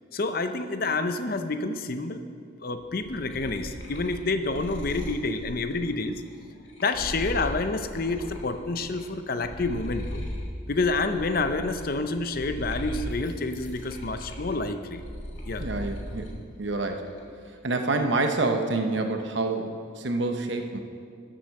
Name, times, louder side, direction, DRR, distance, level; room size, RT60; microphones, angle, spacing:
voice 1, 0.1-2.2 2.6-6.2 6.8-10.2 10.7-15.0 15.5-15.7, left 3 dB, 50° left, 8 dB, 0.7 m, -28 dB
sound 1, 2.8-9.0 9.3-16.4 16.8-17.4, equal, 70° left, 2.2 m, -38 dB
voice 2, 15.6-17.1 17.6-20.8, right 2 dB, 65° right, 5 dB, 0.9 m, -27 dB
12.5 x 7.7 x 6.5 m, 2.2 s
head